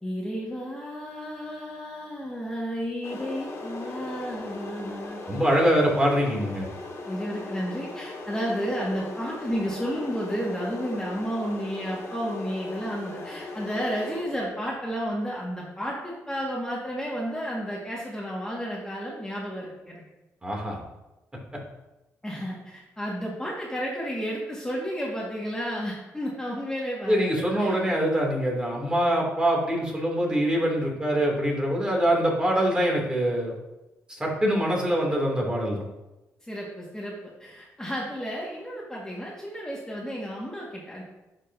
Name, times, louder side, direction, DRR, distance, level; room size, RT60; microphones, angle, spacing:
voice 1, 0.0-5.2 7.1-20.0 22.2-27.8 36.4-41.0, equal, 10° left, -4 dB, 1.8 m, -32 dB
sound 1, 3.0-14.2, left 2 dB, 65° left, 2.1 m, -38 dB
voice 2, 5.3-6.7 20.4-20.8 27.1-33.5 34.1-35.9, equal, 15° right, -2 dB, 2.8 m, -24 dB
11.0 x 5.2 x 2.8 m, 1.0 s
cardioid pair, 70°, 6 cm